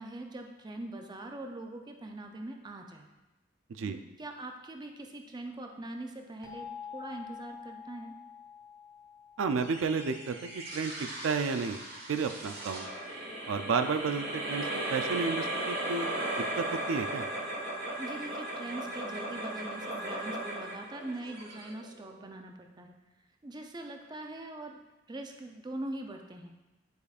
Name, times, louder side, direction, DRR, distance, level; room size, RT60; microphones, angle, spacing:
voice 1, 0.0-3.1 3.8-6.7 6.9-8.1 18.0-23.0 23.4-24.8 25.1-26.5, right 2 dB, 20° right, 4 dB, 0.4 m, -42 dB
sound 1, 6.4-11.1, left 7 dB, 5° right, 1.1 m, -48 dB
voice 2, 9.4-11.8 12.1-12.9 13.5-16.1 16.6-17.2, right 5 dB, 80° right, 8 dB, 0.4 m, -32 dB
sound 2, 9.6-22.3, right 1 dB, 50° right, 1.3 m, -37 dB
9.3 x 4.9 x 2.4 m, 1.1 s
head